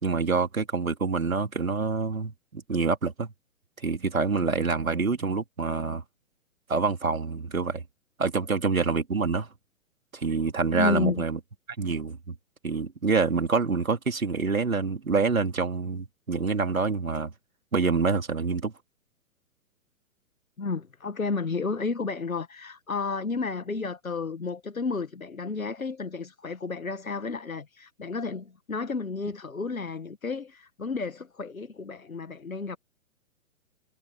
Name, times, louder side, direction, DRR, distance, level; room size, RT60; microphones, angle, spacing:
voice 1, 0.0-3.3 3.8-6.0 6.7-7.8 8.2-9.5 10.1-11.4 11.8-12.4 12.6-17.3 17.7-18.7, right 4 dB, 80° right, 3.4 m, -26 dB
voice 2, 10.7-11.2 20.6-32.8, left 4 dB, 80° left, 1.8 m, -31 dB
figure-of-eight pair, 120°, 41 cm